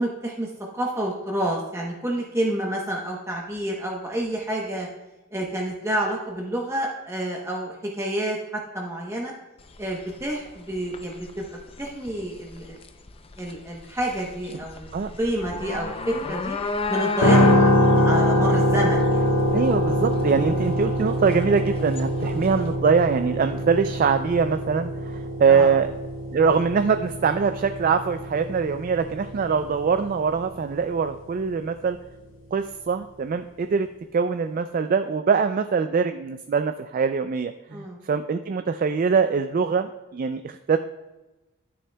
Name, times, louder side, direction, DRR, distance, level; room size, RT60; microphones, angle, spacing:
voice 1, 0.0-4.9 5.3-9.3 9.8-12.8 13.4-16.6 16.9-19.2 20.3-20.5 22.2-22.4 25.5-25.7 37.7-38.0, right 1 dB, 15° right, -2 dB, 0.9 m, -29 dB
sound 1, 9.6-22.7, left 3 dB, 25° left, 0.4 m, -35 dB
sound 2, 17.2-31.2, equal, 60° left, 1.1 m, -24 dB
voice 2, 19.5-25.9 26.3-32.0 32.5-33.9 34.1-40.8, right 5 dB, 40° right, 9 dB, 0.3 m, -23 dB
10.5 x 10.0 x 2.2 m, 1.1 s
head